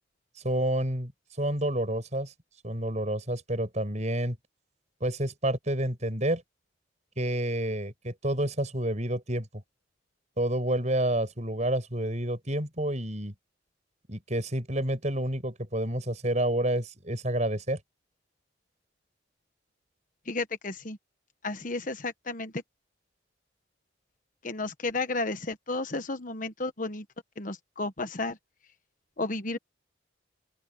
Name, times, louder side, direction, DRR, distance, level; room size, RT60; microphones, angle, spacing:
voice 1, 0.4-1.1 1.4-2.3 2.6-4.4 5.0-6.4 7.2-9.5 10.4-13.3 14.1-17.8, right 1 dB, 35° right, 6.8 m, -29 dB
voice 2, 20.3-21.0 21.4-22.6 24.4-27.0 27.4-28.4 29.2-29.6, left 3 dB, 45° left, 1.2 m, -32 dB
open air
head